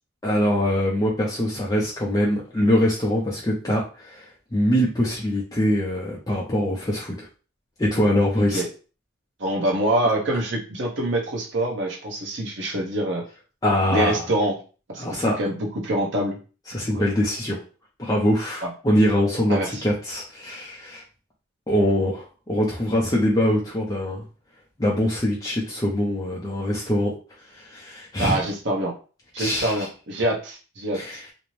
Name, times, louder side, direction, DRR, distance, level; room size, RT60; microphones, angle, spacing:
voice 1, 0.2-7.3 7.8-8.6 10.3-10.4 13.6-14.3 15.0-15.4 16.7-17.6 18.0-21.0 21.7-24.2 24.8-27.1 27.5-28.4 29.4-29.9 30.9-31.2, equal, 15° left, -4 dB, 0.4 m, -23 dB
voice 2, 9.4-13.2 13.9-14.6 14.9-16.4 16.9-17.0 18.6-18.7 19.5-19.8 28.2-28.9 29.3-31.0, right 1 dB, 60° right, -1 dB, 0.8 m, -25 dB
2.5 x 2.0 x 3.0 m, 0.36 s
head